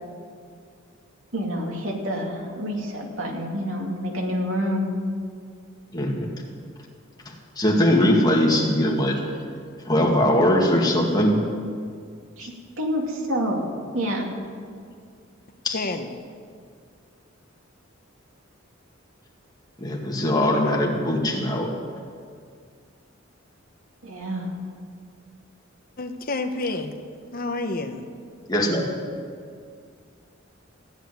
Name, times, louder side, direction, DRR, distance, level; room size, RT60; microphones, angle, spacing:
voice 1, 1.3-4.9 12.4-13.7 13.9-14.3 24.0-24.5, equal, 85° right, 0 dB, 2.6 m, -28 dB
voice 2, 5.9-6.3 7.3-9.2 9.9-11.4 12.4-12.5 15.6-15.8 19.8-21.7 28.5-28.9, left 1 dB, 20° left, -1 dB, 2.1 m, -21 dB
voice 3, 15.7-16.1 26.0-26.9 27.3-28.1, left 2 dB, 45° left, 7 dB, 1.0 m, -29 dB
15.0 x 8.7 x 9.4 m, 2.2 s
head